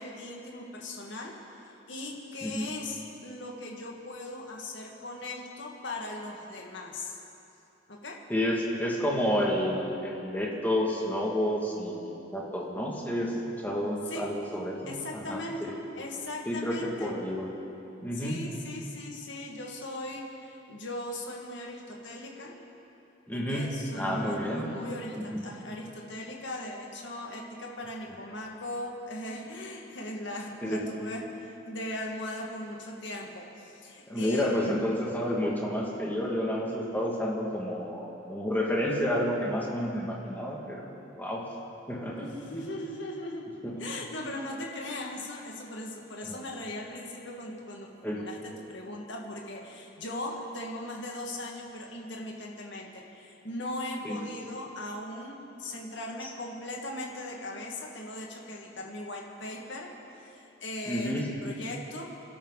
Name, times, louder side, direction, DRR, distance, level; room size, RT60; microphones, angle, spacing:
voice 1, 0.0-1.3 1.7-7.2 7.9-8.2 14.1-14.3 14.8-17.2 18.1-22.5 23.3-34.9 42.2-43.5 43.8-59.9 60.1-62.1, left 1 dB, 70° left, -1 dB, 2.2 m, -39 dB
voice 2, 8.3-14.9 15.3-15.7 16.5-17.5 18.0-18.4 23.3-23.7 23.9-24.7 25.2-25.5 30.6-30.8 34.1-41.4 41.9-42.3 43.6-43.8 46.2-46.4 48.0-48.2 54.0-54.2 60.9-61.3, equal, 10° left, -3 dB, 2.4 m, -30 dB
27.5 x 12.5 x 4.2 m, 2.9 s
head